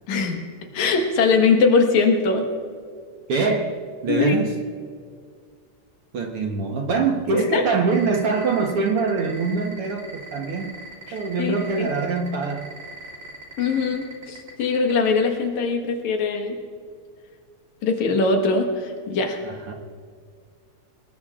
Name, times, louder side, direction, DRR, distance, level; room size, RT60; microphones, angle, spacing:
voice 1, 0.1-0.4 0.7-2.5 4.1-4.4 7.3-7.6 11.1-11.9 13.6-16.6 17.8-19.4, left 4 dB, 75° left, 3 dB, 2.8 m, -21 dB
voice 2, 3.3-4.5 6.1-10.7 11.1-12.7 19.4-19.7, right 4 dB, 60° right, 2 dB, 1.8 m, -24 dB
sound 1, 7.9-15.2, right 3 dB, 25° right, 2.9 m, -39 dB
25.5 x 20.0 x 2.5 m, 2.1 s
omnidirectional pair, 3.3 m